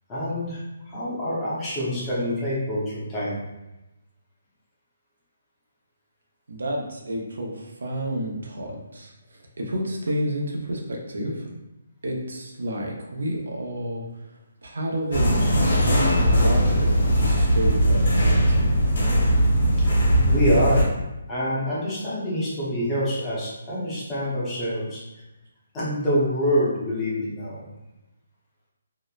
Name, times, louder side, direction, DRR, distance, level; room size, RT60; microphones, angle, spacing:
voice 1, 0.1-3.4 18.8-18.9 20.3-20.9 21.3-25.0 25.7-27.7, equal, 10° left, -9 dB, 0.6 m, -26 dB
voice 2, 6.5-11.5 12.0-14.3 14.6-15.4 15.9-18.9, equal, 80° right, 0 dB, 0.6 m, -30 dB
sound 1, 15.1-20.8, equal, 55° left, 1.1 m, -19 dB
2.8 x 2.0 x 2.3 m, 0.99 s
hypercardioid pair, 175°, 0 cm